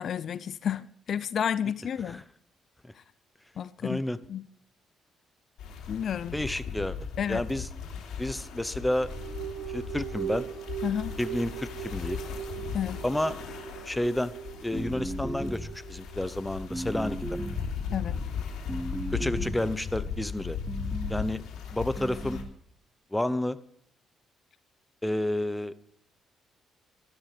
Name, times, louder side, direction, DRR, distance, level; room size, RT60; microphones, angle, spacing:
voice 1, 0.0-2.2 3.6-4.0 4.3-4.5 5.9-6.4 7.2-7.4 10.8-11.1 12.7-13.0 17.9-18.2, left 8 dB, 60° left, 0.5 m, -31 dB
voice 2, 3.8-4.2 6.3-7.0 7.3-7.7 8.2-9.1 9.7-10.5 11.2-12.2 13.0-13.4 13.8-14.3 14.6-17.4 19.1-20.6 21.1-21.4 21.7-22.4 23.1-23.6 25.0-25.7, left 1 dB, 10° left, 0.9 m, -30 dB
sound 1, 5.6-22.4, left 6 dB, 80° left, 3.0 m, -37 dB
sound 2, 8.8-16.3, right 10 dB, 90° right, 1.2 m, -40 dB
sound 3, 14.7-15.9 16.7-17.8 18.7-19.8 20.7-21.2 22.0-22.5, right 1 dB, 10° right, 0.4 m, -36 dB
12.5 x 12.5 x 5.1 m
cardioid pair, 90°, 0 cm